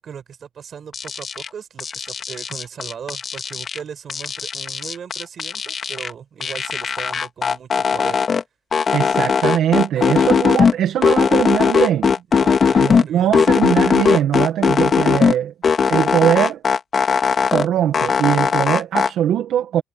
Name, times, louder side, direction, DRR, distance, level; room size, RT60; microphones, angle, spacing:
voice 1, 0.0-8.2 10.0-10.4 12.3-13.7, right 7 dB, 55° right, 5.2 m, -37 dB
sound 1, 0.9-1.5 1.8-3.8 4.1-6.1 6.4-8.4 8.7-10.7 11.0-13.0 13.3-15.3 15.6-17.6 17.9-19.1, left 6 dB, 45° left, 2.3 m, -18 dB
voice 2, 8.9-12.2 12.7-15.5 15.9-16.6 17.5-19.8, right 10 dB, 75° right, 1.9 m, -20 dB
cardioid pair, 90°, 0 cm